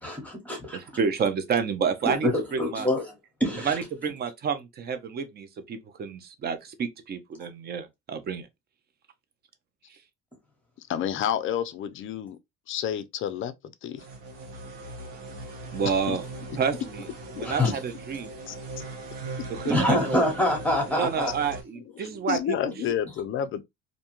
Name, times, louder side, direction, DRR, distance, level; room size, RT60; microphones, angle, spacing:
voice 1, 0.0-0.8 2.2-3.1 3.4-3.8 17.4-17.8 19.7-21.3, left 1 dB, 5° left, 1.0 m, -25 dB
voice 2, 0.7-2.9 3.6-8.5 15.7-16.2 16.6-17.1 17.3-18.3 19.5-20.3 20.9-22.7, right 6 dB, 30° right, 0.5 m, -29 dB
voice 3, 10.9-12.4 12.7-13.5 13.8-14.0 15.8-16.2 17.4-17.5 18.5-18.9 22.0-23.6, left 9 dB, 40° left, 0.4 m, -30 dB
sound 1, 14.0-21.6, right 2 dB, 90° right, 1.1 m, -39 dB
2.6 x 2.2 x 2.8 m
cardioid pair, 120°, 31 cm